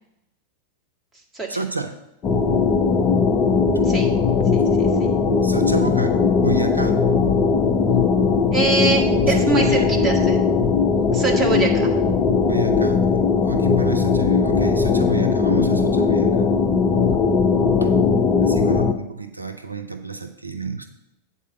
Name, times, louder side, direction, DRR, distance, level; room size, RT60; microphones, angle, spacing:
voice 1, 1.5-2.0 3.7-3.9 4.6-4.7 5.4-7.0 9.2-10.1 12.4-16.3 17.8-18.0 18.4-20.9, right 3 dB, 85° right, 7 dB, 0.6 m, -30 dB
sound 1, 2.2-18.9, left 5 dB, 30° left, 0.7 m, -19 dB
voice 2, 4.5-5.1 8.5-10.4 11.1-12.0, right 3 dB, 5° right, -3 dB, 1.9 m, -23 dB
8.4 x 4.3 x 7.1 m, 0.87 s
figure-of-eight pair, 90°, 0 cm